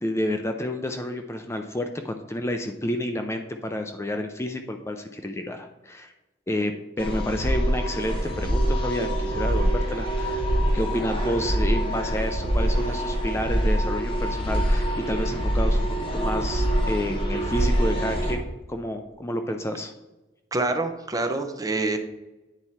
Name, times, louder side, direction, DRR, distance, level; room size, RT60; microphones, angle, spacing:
voice 1, 0.0-6.1 6.5-6.7 7.0-10.5 10.7-15.9 16.1-19.9, left 1 dB, 15° left, 6 dB, 0.4 m, -30 dB
sound 1, 7.0-18.4, equal, 30° left, 1.6 m, -25 dB
voice 2, 20.5-22.0, right 2 dB, 20° right, 7 dB, 0.7 m, -26 dB
9.0 x 4.6 x 4.2 m, 1.1 s
head